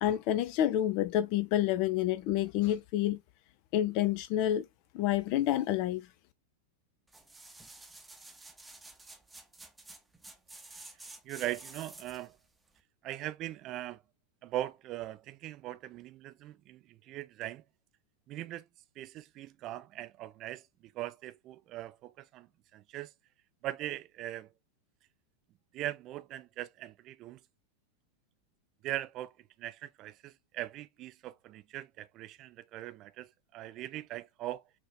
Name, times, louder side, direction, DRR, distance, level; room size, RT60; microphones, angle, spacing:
voice 1, 0.0-3.2 3.7-4.7 4.9-6.1, left 12 dB, 45° left, 0.5 m, -28 dB
sound 1, 7.1-12.3 12.8-12.9, right 2 dB, 10° right, 0.8 m, -51 dB
voice 2, 11.2-12.4 13.0-14.0 14.4-17.6 18.3-18.7 19.0-22.5 22.7-23.1 23.6-24.5 25.7-27.4 28.8-29.3 29.6-34.6, right 14 dB, 35° right, 0.5 m, -40 dB
5.9 x 2.8 x 2.2 m
figure-of-eight pair, 90°, 0 cm